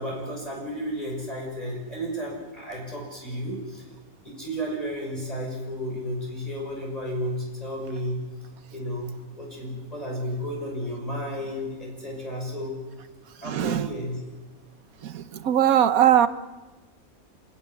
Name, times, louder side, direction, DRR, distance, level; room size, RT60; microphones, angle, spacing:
voice 1, 0.0-3.8 4.2-8.2 8.7-12.7 13.4-14.2, equal, 25° left, -2 dB, 6.1 m, -32 dB
voice 2, 13.4-13.9 15.0-16.3, right 10 dB, 85° right, 12 dB, 1.4 m, -21 dB
27.5 x 12.0 x 9.6 m, 1.2 s
omnidirectional pair, 1.5 m